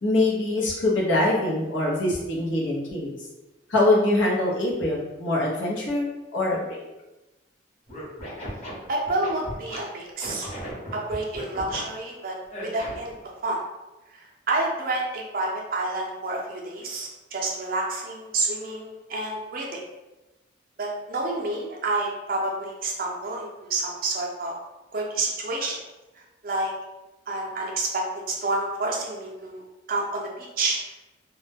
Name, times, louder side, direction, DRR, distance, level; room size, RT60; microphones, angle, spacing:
voice 1, 0.0-3.1 3.7-6.1 6.3-6.8, left 2 dB, 85° left, -3 dB, 0.7 m, -23 dB
Scratching (performance technique), 7.9-9.8 10.2-11.8 12.5-13.1, equal, 35° left, 0.9 m, -37 dB
voice 2, 8.9-10.5 10.9-12.4 12.6-13.1 13.4-13.6 14.1-19.8 20.8-24.5 24.9-25.8 26.4-26.7 27.3-29.6 29.9-30.8, right 2 dB, 50° right, -2 dB, 0.4 m, -29 dB
2.2 x 2.0 x 3.3 m, 1.0 s
head